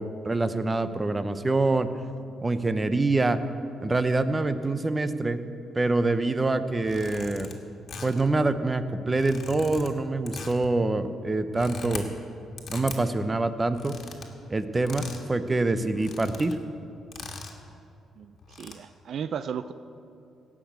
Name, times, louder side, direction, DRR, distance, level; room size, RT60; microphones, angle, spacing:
voice 1, 0.0-1.9 2.4-3.4 3.8-5.4 5.7-7.5 8.0-12.0 12.7-14.0 14.5-16.6, right 2 dB, 20° right, 11 dB, 0.7 m, -25 dB
sound 1, 6.8-7.5 7.9-8.3 9.1-9.9 10.3-10.7 11.4-12.0 12.6-13.0 13.7-14.3 14.9-15.3 15.5-15.6 15.9-16.5 17.1-17.6 18.4-18.7, left 4 dB, 55° left, 1.7 m, -40 dB
voice 2, 18.2-19.7, right 7 dB, 60° right, 12 dB, 0.4 m, -35 dB
16.5 x 6.1 x 8.3 m, 2.6 s
cardioid pair, 90°, 0 cm